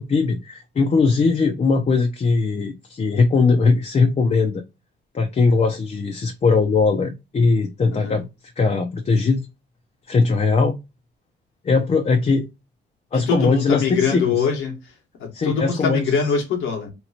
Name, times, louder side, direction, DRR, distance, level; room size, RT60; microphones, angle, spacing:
voice 1, 0.0-4.6 5.1-8.2 8.6-9.5 10.1-10.8 11.6-12.5 13.1-14.2 15.3-16.2, left 4 dB, 35° left, 0.6 m, -20 dB
voice 2, 7.9-8.2 13.1-14.9 15.2-16.9, left 6 dB, 90° left, 1.4 m, -23 dB
3.0 x 2.9 x 2.7 m
cardioid pair, 90°, 20 cm